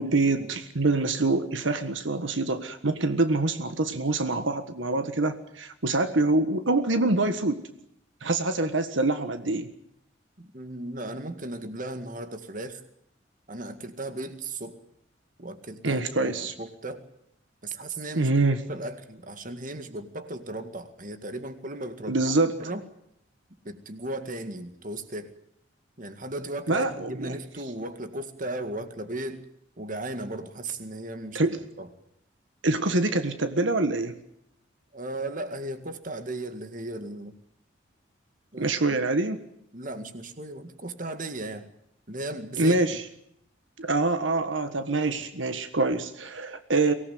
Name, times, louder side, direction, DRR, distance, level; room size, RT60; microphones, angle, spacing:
voice 1, 0.0-7.6 8.2-9.7 15.8-16.5 18.1-18.6 22.1-22.6 26.7-27.3 31.3-31.6 32.6-34.2 38.6-39.4 42.6-43.0 43.8-46.9, right 2 dB, 75° right, 9 dB, 1.5 m, -25 dB
voice 2, 10.4-12.8 13.5-14.8 15.4-17.0 17.6-18.3 18.7-22.3 22.6-22.9 23.6-25.3 26.0-29.4 29.8-31.9 34.9-37.4 38.5-38.7 39.7-41.7 42.1-42.8, right 2 dB, 45° right, 9 dB, 2.0 m, -36 dB
24.0 x 18.0 x 9.4 m, 0.74 s
head